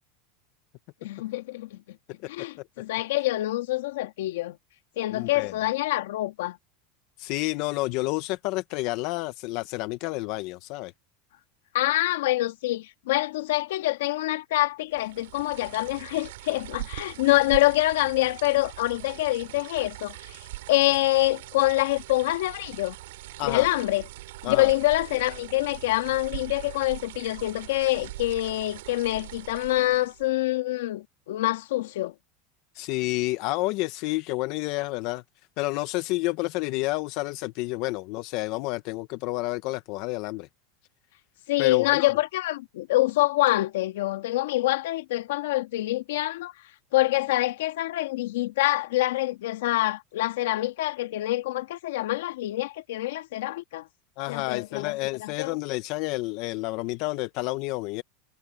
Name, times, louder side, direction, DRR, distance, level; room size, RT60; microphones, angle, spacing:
voice 1, 1.0-2.0 2.3-4.6 5.0-6.6 11.7-20.4 20.7-23.0 23.4-24.0 24.4-32.1 41.5-46.5 46.9-53.9 54.3-55.6, left 17 dB, 85° left, 2.2 m, -26 dB
voice 2, 5.1-5.5 7.2-10.9 23.4-23.7 24.4-24.7 32.7-35.2 35.6-40.5 41.6-42.1 54.2-58.0, left 20 dB, 50° left, 0.6 m, -30 dB
sound 1, 14.9-30.3, right 17 dB, 85° right, 2.9 m, -42 dB
supercardioid pair, 160°, 0 cm